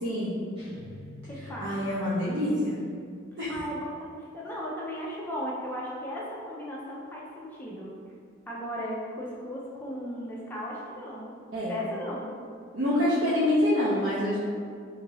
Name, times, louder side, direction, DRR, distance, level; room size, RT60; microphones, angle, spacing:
voice 1, 0.0-0.4 1.4-2.8 3.4-3.5 11.5-11.8 12.7-14.4, left 1 dB, 65° right, -9 dB, 0.6 m, -26 dB
sound 1, 0.6-2.6, left 1 dB, 25° right, 0.8 m, -46 dB
voice 2, 1.3-1.9 3.5-7.9 8.5-11.3 11.7-12.4, equal, 10° left, -5 dB, 0.4 m, -36 dB
2.6 x 2.6 x 3.0 m, 2.1 s
head